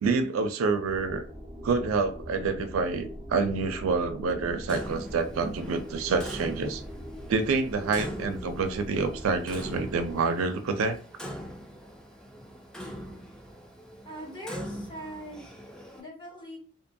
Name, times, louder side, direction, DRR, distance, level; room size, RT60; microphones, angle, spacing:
voice 1, 0.0-1.2 1.6-6.8 7.3-11.0, right 4 dB, 75° right, 0.4 m, -27 dB
sound 1, 0.8-10.1, equal, 15° right, 0.7 m, -42 dB
Clock, 4.7-16.0, equal, 5° left, 0.3 m, -42 dB
voice 2, 14.0-15.5 15.9-16.6, right 1 dB, 25° left, 1.1 m, -41 dB
2.7 x 2.2 x 2.6 m
head